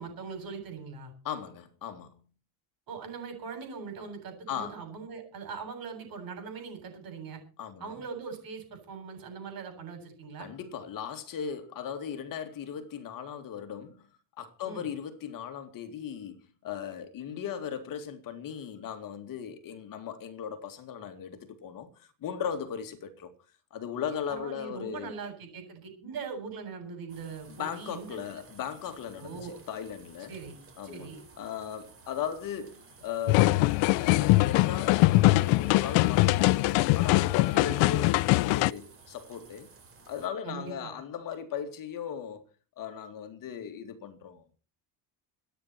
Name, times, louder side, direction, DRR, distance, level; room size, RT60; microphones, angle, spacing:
voice 1, 0.0-1.1 2.9-7.4 7.8-10.5 14.6-14.9 24.3-28.4 29.2-29.6 30.3-30.6 30.8-31.2 37.5-37.8 40.4-40.9, right 5 dB, 50° right, 7.8 m, -41 dB
voice 2, 1.2-2.2 4.5-4.8 7.6-8.0 10.4-14.0 14.4-23.3 23.7-25.2 27.5-30.4 30.8-31.1 31.4-33.7 34.0-39.7 40.1-42.4 42.8-44.5, left 8 dB, 45° left, 2.3 m, -37 dB
sound 1, 27.1-40.3, right 4 dB, 30° right, 3.9 m, -55 dB
sound 2, 33.3-38.7, left 20 dB, 80° left, 0.7 m, -22 dB
26.0 x 9.7 x 4.4 m
cardioid pair, 150°, 44 cm